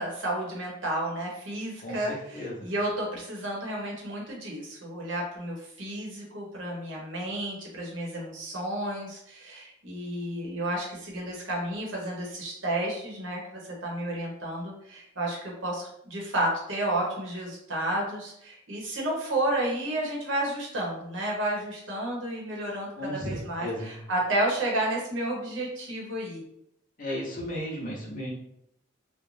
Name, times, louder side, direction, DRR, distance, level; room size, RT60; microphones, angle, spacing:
voice 1, 0.0-26.4, right 1 dB, 80° right, -3 dB, 0.9 m, -31 dB
voice 2, 1.8-2.6 23.0-23.9 27.0-28.3, equal, 40° left, -3 dB, 0.7 m, -34 dB
2.5 x 2.1 x 3.1 m, 0.76 s
head